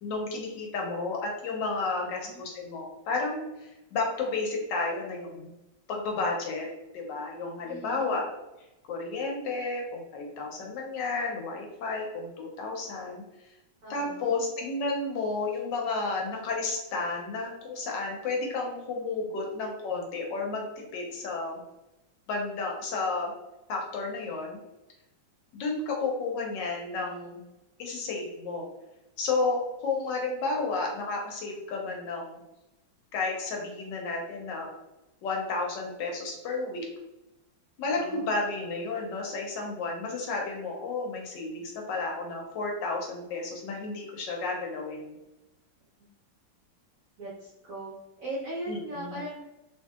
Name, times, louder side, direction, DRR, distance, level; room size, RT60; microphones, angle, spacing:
voice 1, 0.0-5.5 5.9-6.7 6.9-8.2 8.9-13.2 13.9-21.6 22.3-23.3 23.7-24.6 25.5-27.4 27.8-28.7 29.2-32.3 33.1-34.7 35.2-36.9 37.8-45.1 48.7-49.2, left 3 dB, 70° left, 0 dB, 1.2 m, -32 dB
voice 2, 1.8-2.4 7.6-8.2 13.8-14.4 37.9-38.3 46.0-46.1 47.2-47.9 48.2-49.4, right 1 dB, 60° right, -7 dB, 0.9 m, -39 dB
3.0 x 2.6 x 2.3 m, 0.98 s
omnidirectional pair, 2.1 m